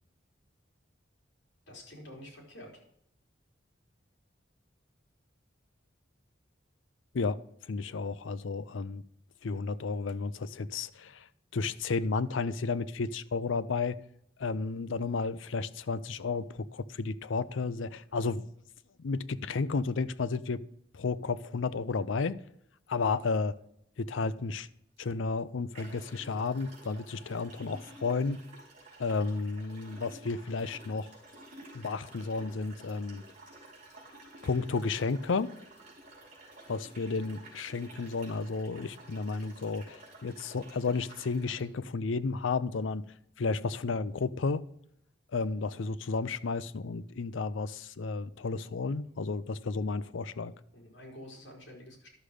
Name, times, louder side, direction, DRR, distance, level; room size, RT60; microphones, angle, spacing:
voice 1, 1.7-2.8 50.7-52.1, left 1 dB, 65° left, 3.8 m, -48 dB
voice 2, 7.1-9.0 9.4-11.3 11.5-14.0 14.4-18.4 19.0-20.6 20.9-22.4 22.9-23.5 24.0-24.7 25.0-28.4 29.0-31.1 31.7-33.2 34.4-35.5 36.7-43.0 43.4-44.6 45.3-50.5, left 4 dB, 90° left, 0.5 m, -32 dB
sound 1, 25.0-25.1 25.7-41.7, right 2 dB, 40° right, 4.5 m, -52 dB
12.0 x 6.4 x 5.0 m
head